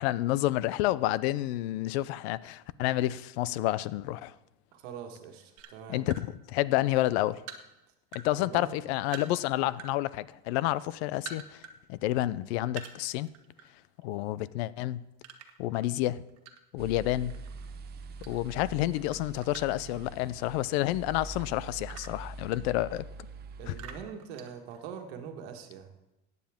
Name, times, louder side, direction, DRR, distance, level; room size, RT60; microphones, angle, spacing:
voice 1, 0.0-4.3 5.9-7.4 8.1-11.6 11.9-13.3 14.0-15.0 15.6-16.2 16.7-17.4 18.3-23.0 23.7-23.8, left 15 dB, 85° left, 0.6 m, -29 dB
voice 2, 4.7-6.0 8.4-8.8 23.6-25.9, right 7 dB, 85° right, 1.5 m, -43 dB
sound 1, 5.6-6.3 6.8-8.3 8.6-9.9 10.3-11.8 12.1-12.2 12.7-13.7 14.0-14.2 15.2-16.8 17.3-18.7 19.0-20.6 21.1-23.1 23.7-25.1, right 7 dB, 55° right, 1.3 m, -47 dB
sound 2, 16.8-24.0, right 4 dB, 30° right, 0.8 m, -44 dB
15.0 x 9.4 x 3.6 m
cardioid pair, 130°, 31 cm